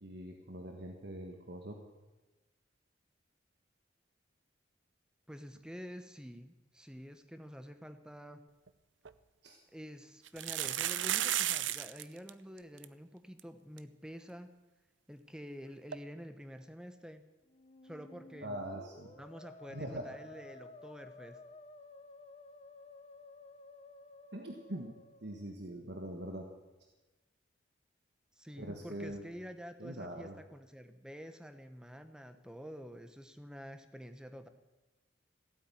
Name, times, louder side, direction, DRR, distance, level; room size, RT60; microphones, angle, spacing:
voice 1, 0.0-1.8 9.4-9.6 18.4-19.1 19.7-20.1 24.3-24.9 25.2-26.5 28.6-29.2 29.8-30.3, right 1 dB, 60° right, 2 dB, 1.6 m, -43 dB
voice 2, 5.3-8.5 9.7-14.5 15.1-17.3 17.8-18.6 19.2-21.4 28.4-34.5, equal, 5° right, 9 dB, 1.0 m, -48 dB
sound 1, 8.7-8.8 9.1-9.2 10.3-12.0 12.3-12.4 12.6-12.9 13.4-13.5 13.8-13.9 15.9-16.0, right 12 dB, 80° right, 0.6 m, -33 dB
Musical instrument, 17.4-25.5, left 2 dB, 35° left, 0.7 m, -54 dB
16.0 x 8.9 x 9.2 m, 1.1 s
head